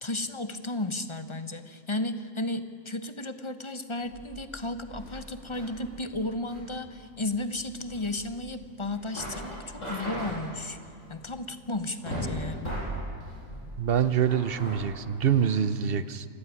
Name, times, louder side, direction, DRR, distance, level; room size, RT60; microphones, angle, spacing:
voice 1, 0.0-10.8 11.1-12.8, left 2 dB, 25° left, 10 dB, 1.1 m, -34 dB
sound 1, 4.0-15.6, equal, 65° left, 8.5 m, -39 dB
voice 2, 13.8-16.2, right 8 dB, 50° right, 14 dB, 1.0 m, -25 dB
27.5 x 15.5 x 9.8 m, 2.6 s
omnidirectional pair, 1.4 m